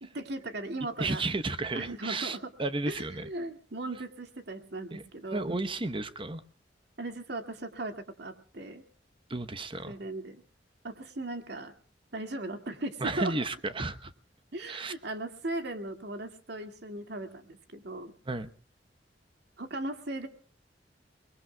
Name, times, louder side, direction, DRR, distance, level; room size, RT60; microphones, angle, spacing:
voice 1, 0.0-1.2 1.7-2.5 2.9-5.6 7.0-8.8 9.8-10.4 10.8-11.7 12.1-13.3 14.5-18.1 19.6-20.3, right 2 dB, 65° right, 7 dB, 2.2 m, -37 dB
voice 2, 1.0-3.3 4.9-5.0 5.3-6.4 9.3-10.0 13.0-14.1 14.7-14.9 18.3-18.5, right 2 dB, 30° right, 11 dB, 1.0 m, -33 dB
29.5 x 21.0 x 2.3 m, 0.42 s
head